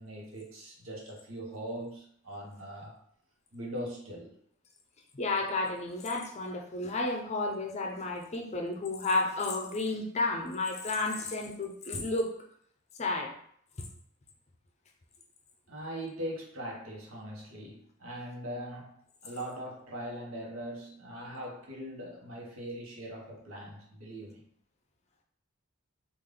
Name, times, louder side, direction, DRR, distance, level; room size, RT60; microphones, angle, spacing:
voice 1, 0.0-3.0 3.5-4.4 11.4-11.5 15.7-24.5, right 1 dB, 80° right, -1 dB, 1.0 m, -41 dB
voice 2, 5.1-12.4 13.0-13.3, left 2 dB, 30° left, 2 dB, 0.5 m, -32 dB
3.3 x 2.4 x 3.7 m, 0.63 s
head